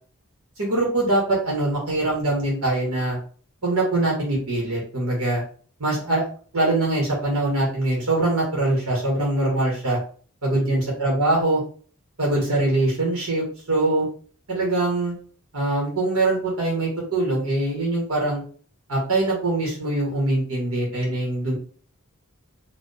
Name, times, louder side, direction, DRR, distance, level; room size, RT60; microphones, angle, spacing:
voice 1, 0.6-3.2 3.6-5.4 5.8-6.2 6.5-10.0 10.4-11.6 12.2-14.1 14.5-15.2 15.5-18.4 18.9-21.5, right 2 dB, 70° right, -3 dB, 1.8 m, -23 dB
4.5 x 3.0 x 3.5 m, 0.43 s
head